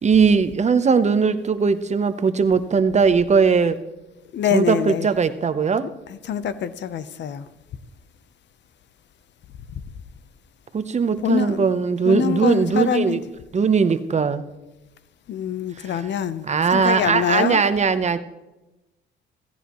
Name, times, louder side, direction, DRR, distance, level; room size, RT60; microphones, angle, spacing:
voice 1, 0.0-3.8 4.5-5.8 10.7-13.2 13.5-14.4 16.5-18.2, right 5 dB, 35° right, 12 dB, 0.8 m, -19 dB
voice 2, 4.3-5.1 6.1-7.5 11.2-11.7 12.0-13.2 15.3-17.6, left 8 dB, 65° left, 14 dB, 0.8 m, -25 dB
16.0 x 15.0 x 3.1 m, 1.0 s
cardioid pair, 90°, 20 cm